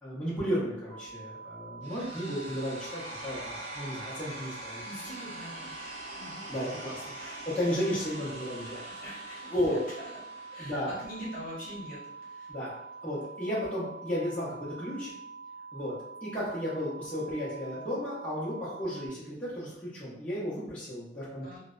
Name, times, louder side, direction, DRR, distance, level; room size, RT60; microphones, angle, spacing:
voice 1, 0.0-4.8 6.5-7.0 7.5-8.8 9.5-9.8 10.6-10.9 12.5-12.7 13.0-15.1 15.7-16.0 16.2-21.5, equal, 10° left, -10 dB, 0.6 m, -33 dB
sound 1, 0.9-19.1, right 4 dB, 85° right, 0.7 m, -46 dB
sound 2, 1.8-11.8, right 1 dB, 40° right, 0.8 m, -45 dB
voice 2, 4.8-6.4 7.2-7.5 8.6-10.2 10.5-12.5 21.4-21.6, equal, 50° left, -6 dB, 0.9 m, -44 dB
2.5 x 2.1 x 2.3 m, 0.84 s
head